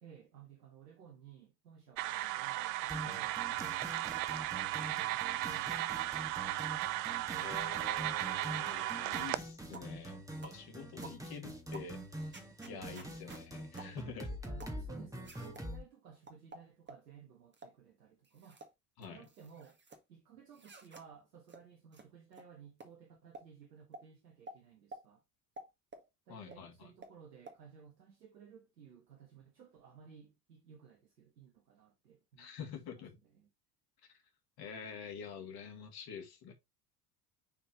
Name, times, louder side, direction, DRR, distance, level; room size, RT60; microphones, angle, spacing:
voice 1, 0.0-6.7 9.7-10.1 12.7-13.5 14.3-18.6 19.1-19.8 20.1-25.2 26.3-32.6 33.2-33.5, right 7 dB, 80° right, 1.4 m, -57 dB
sound 1, 2.0-9.4, right 16 dB, 60° right, 0.7 m, -36 dB
sound 2, 2.9-15.8, right 1 dB, 5° right, 1.7 m, -45 dB
voice 2, 7.3-12.3 12.7-14.3 19.0-19.3 26.3-26.9 32.4-33.2 34.6-36.5, left 6 dB, 50° left, 2.5 m, -47 dB
sound 3, 9.1-9.4 9.7-9.9 10.4-10.6 11.0-11.2 11.7-11.9 12.3-13.4 13.8-14.0 14.6-14.8 15.2-15.7 16.3-17.0 17.5-17.8 18.2-18.7 19.0-20.0 20.5-21.0 21.5-21.6 21.9-22.1 22.3-22.4 22.8-22.9 23.3-23.5 23.9-24.0 24.5-24.6 24.9-25.0 25.6-26.1 26.5-26.6 27.0-27.1 27.5-27.6, right 2 dB, 20° right, 1.9 m, -51 dB
7.1 x 4.5 x 3.1 m
figure-of-eight pair, 65°, 48 cm